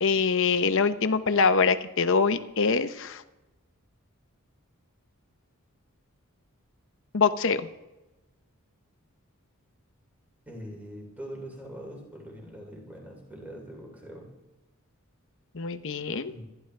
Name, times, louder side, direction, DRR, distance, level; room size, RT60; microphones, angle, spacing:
voice 1, 0.0-3.2 7.1-7.7 15.5-16.3, left 5 dB, 60° left, 10 dB, 0.8 m, -24 dB
voice 2, 10.5-14.3 16.3-16.4, equal, 5° right, -1 dB, 3.0 m, -42 dB
27.0 x 11.0 x 3.4 m, 1.0 s
head